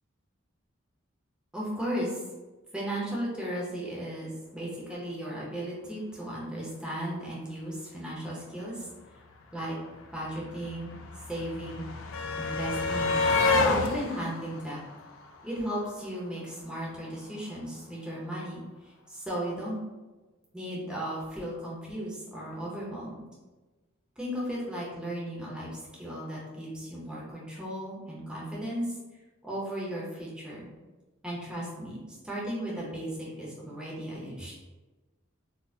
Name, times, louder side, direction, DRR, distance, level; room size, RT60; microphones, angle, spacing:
voice 1, 1.5-2.2 2.7-8.9 9.5-9.7 10.1-10.9 11.3-11.8 12.4-13.2 13.7-14.8 15.4-18.6 19.1-19.8 20.5-23.2 24.2-25.7 26.0-28.9 29.4-30.7 31.2-34.7, right 1 dB, 5° right, -6 dB, 0.6 m, -35 dB
sound 1, 9.3-9.4 9.6-15.8 17.0-17.1 17.4-17.5, left 3 dB, 70° left, 0.3 m, -29 dB
4.0 x 2.0 x 2.6 m, 1.2 s
head